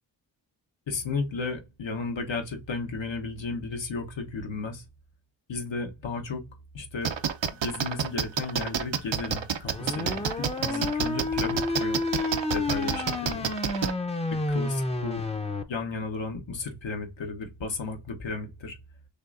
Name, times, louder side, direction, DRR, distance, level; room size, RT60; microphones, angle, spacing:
voice 1, 0.9-4.8 5.5-6.4 6.7-7.1 7.5-12.0 12.3-13.5 14.3-15.2 15.7-18.8, left 4 dB, 75° left, 1.1 m, -34 dB
sound 1, 7.0-13.9, right 7 dB, 75° right, 0.7 m, -28 dB
sound 2, 9.7-15.6, left 2 dB, 15° left, 0.6 m, -30 dB
6.5 x 2.6 x 2.5 m
cardioid pair, 50°, 46 cm